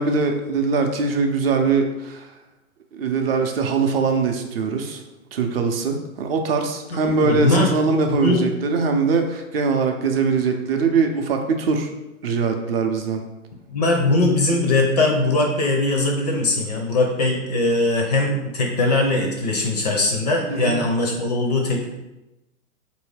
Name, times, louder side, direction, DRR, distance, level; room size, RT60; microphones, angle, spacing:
voice 1, 0.0-2.3 2.9-5.0 5.3-11.9 12.2-13.2 20.5-20.8, right 4 dB, 45° right, 4 dB, 0.5 m, -22 dB
voice 2, 7.0-8.5 13.7-21.9, left 2 dB, 30° left, 2 dB, 0.4 m, -21 dB
4.3 x 2.7 x 3.2 m, 0.99 s
hypercardioid pair, 120°, 43 cm